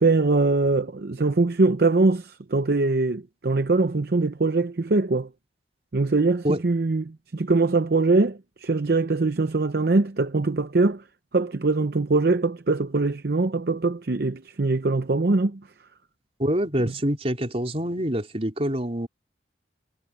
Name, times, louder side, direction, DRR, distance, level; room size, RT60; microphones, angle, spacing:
voice 1, 0.0-5.3 5.9-11.0 11.3-15.6, right 3 dB, 60° right, 0.7 m, -22 dB
voice 2, 16.4-19.1, equal, 35° right, 4.4 m, -26 dB
head